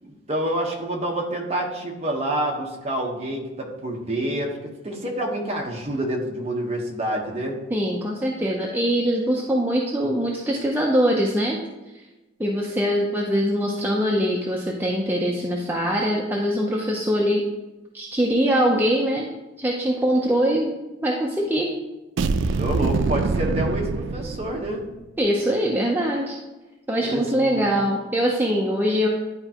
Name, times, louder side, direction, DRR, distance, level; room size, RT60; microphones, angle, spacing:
voice 1, 0.0-7.6 22.5-24.8 27.0-27.7, right 1 dB, 30° right, -1 dB, 1.2 m, -28 dB
voice 2, 7.7-11.6 12.4-17.4 17.9-19.3 19.6-20.7 21.0-21.7 25.2-26.4 26.9-29.1, equal, 10° right, -3 dB, 0.6 m, -22 dB
sound 1, 22.2-24.9, right 4 dB, 70° right, 0.4 m, -24 dB
11.0 x 4.5 x 2.9 m, 1.1 s
head